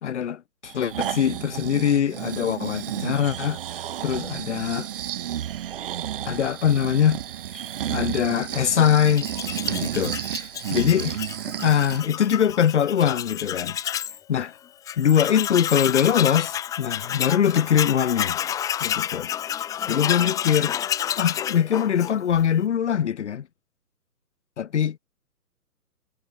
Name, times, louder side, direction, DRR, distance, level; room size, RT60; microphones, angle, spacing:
voice 1, 0.0-4.9 6.2-7.2 7.5-7.6 7.9-9.3 9.7-13.8 14.3-14.5 15.0-18.4 18.8-19.3 19.6-20.8 21.2-23.5 24.6-25.0, left 8 dB, 45° left, 2.2 m, -23 dB
Breathing, 0.6-12.1 12.5-12.6, right 10 dB, 35° right, 1.3 m, -32 dB
Tools, 9.1-14.2 14.5-14.6 14.9-22.5, left 10 dB, 5° left, 1.0 m, -30 dB
figure-of-eight pair, 135°, 46 cm